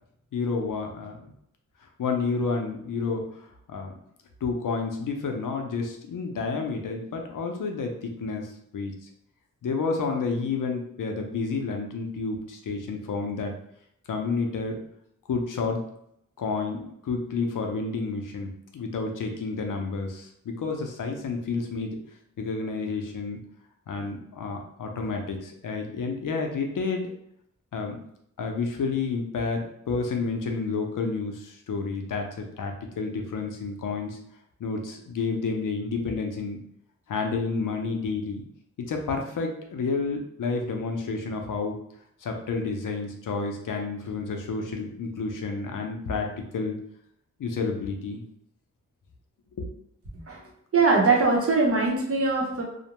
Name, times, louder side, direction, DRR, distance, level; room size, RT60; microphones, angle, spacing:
voice 1, 0.3-1.3 2.0-3.9 4.4-9.1 9.6-13.5 14.1-14.8 15.3-15.8 16.4-22.0 22.4-23.4 23.9-27.1 27.7-28.0 28.4-34.2 34.6-36.6 37.1-38.4 38.8-41.8 42.2-46.8 47.4-48.2 49.6-49.7, left 4 dB, 80° left, 3 dB, 0.5 m, -30 dB
voice 2, 50.7-52.6, right 3 dB, 45° right, -2 dB, 0.7 m, -21 dB
2.5 x 2.1 x 2.9 m, 0.74 s
wide cardioid pair, 120°, 31 cm